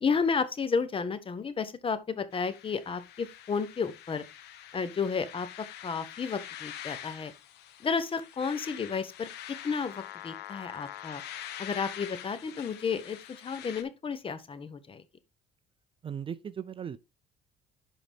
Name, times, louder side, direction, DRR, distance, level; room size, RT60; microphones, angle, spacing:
voice 1, 0.0-4.2 4.7-5.5 5.8-7.3 7.8-9.3 9.6-11.2 11.6-13.2 13.4-15.0, left 5 dB, 30° left, 1.1 m, -32 dB
sound 1, 2.3-13.8, left 11 dB, 80° left, 1.1 m, -45 dB
voice 2, 16.0-17.0, right 8 dB, 30° right, 0.4 m, -37 dB
11.0 x 4.0 x 3.5 m
cardioid pair, 110°, 17 cm